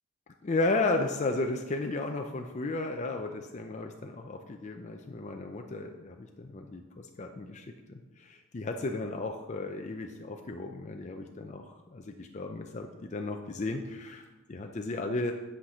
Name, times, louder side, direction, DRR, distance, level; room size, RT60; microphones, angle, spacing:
voice 1, 0.4-7.7 8.2-14.2 14.5-15.3, left 2 dB, 35° left, 4 dB, 0.5 m, -34 dB
8.5 x 5.8 x 5.0 m, 1.2 s
head